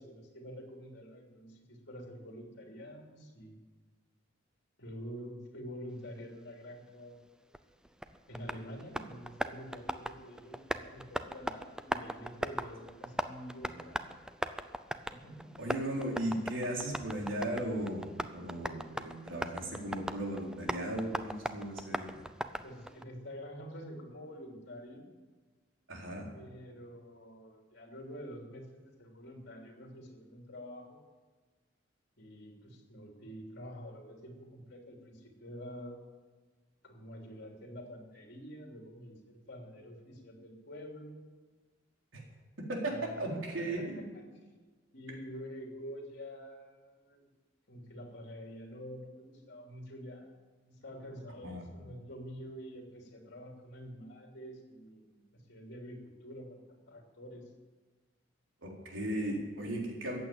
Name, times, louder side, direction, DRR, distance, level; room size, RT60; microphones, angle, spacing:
voice 1, 0.0-3.6 4.8-7.2 8.3-14.1 15.1-15.6 22.6-25.1 26.3-31.0 32.2-36.0 36.8-41.2 42.9-43.2 43.6-44.2 44.9-47.3 47.7-50.3 50.6-57.4, equal, 60° left, 1 dB, 3.2 m, -47 dB
Tap, 7.5-23.0, right 1 dB, 5° right, 0.5 m, -40 dB
voice 2, 15.6-22.2 25.9-26.3 42.1-42.2 42.7-43.8 51.4-51.7 58.6-60.2, right 1 dB, 85° right, -1 dB, 4.0 m, -36 dB
15.0 x 8.6 x 9.2 m, 1.3 s
head